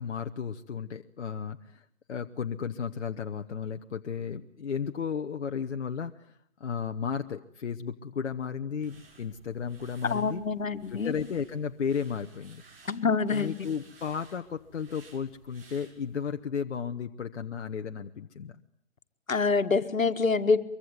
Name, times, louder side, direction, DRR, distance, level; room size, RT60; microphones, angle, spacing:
voice 1, 0.0-1.8 2.1-10.4 10.9-12.6 13.3-18.6, left 7 dB, 55° left, 6 dB, 1.1 m, -34 dB
sound 1, 8.8-16.3, right 4 dB, 45° right, 6.9 m, -55 dB
voice 2, 10.1-11.1 12.9-13.7 19.3-20.6, left 4 dB, 80° left, 9 dB, 1.9 m, -26 dB
24.0 x 23.5 x 9.4 m, 0.69 s
figure-of-eight pair, 150°, 40 cm